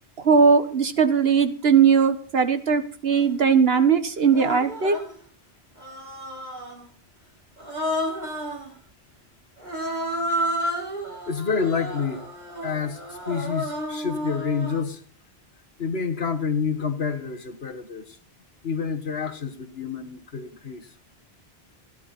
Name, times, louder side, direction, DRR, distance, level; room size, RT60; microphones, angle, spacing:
voice 1, 0.2-5.0, right 6 dB, 70° right, 10 dB, 1.7 m, -19 dB
Human voice, 3.1-3.3 4.3-5.2 5.8-6.9 7.6-8.7 9.6-14.9, equal, 45° right, 3.7 m, -31 dB
voice 2, 11.3-12.3 12.6-15.0 15.8-18.2 18.6-20.9, left 5 dB, 75° left, 9 dB, 1.8 m, -28 dB
17.0 x 11.0 x 4.3 m, 0.43 s
omnidirectional pair, 1.1 m